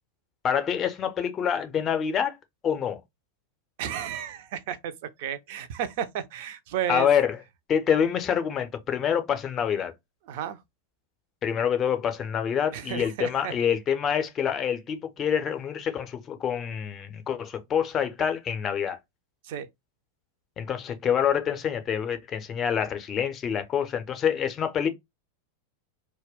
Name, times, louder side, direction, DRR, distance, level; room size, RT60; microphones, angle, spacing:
voice 1, 0.4-2.4 2.6-3.0 6.9-7.4 7.7-9.9 11.4-19.0 20.6-24.9, left 8 dB, 25° left, 0.5 m, -26 dB
voice 2, 3.8-7.1 10.3-10.6 12.7-13.5 19.4-19.7, right 9 dB, 50° right, 0.4 m, -33 dB
2.2 x 2.2 x 3.4 m
figure-of-eight pair, 90°, 0 cm